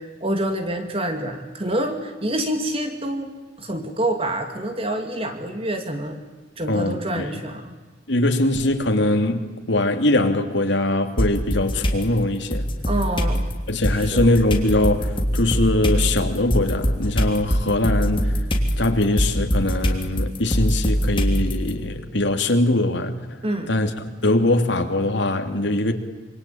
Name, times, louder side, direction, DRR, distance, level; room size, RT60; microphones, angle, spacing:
voice 1, 0.0-3.3 3.6-6.2 6.6-7.7 12.9-13.5 13.9-14.3 23.4-23.7, right 1 dB, 30° right, 6 dB, 2.5 m, -27 dB
voice 2, 6.7-7.2 8.1-12.7 13.7-18.3 18.8-23.1 23.7-23.9 24.2-25.9, left 1 dB, 70° left, 5 dB, 3.0 m, -21 dB
sound 1, 11.2-12.0 12.5-21.7, equal, 25° left, 3.3 m, -23 dB
27.0 x 25.0 x 8.8 m, 1.2 s
head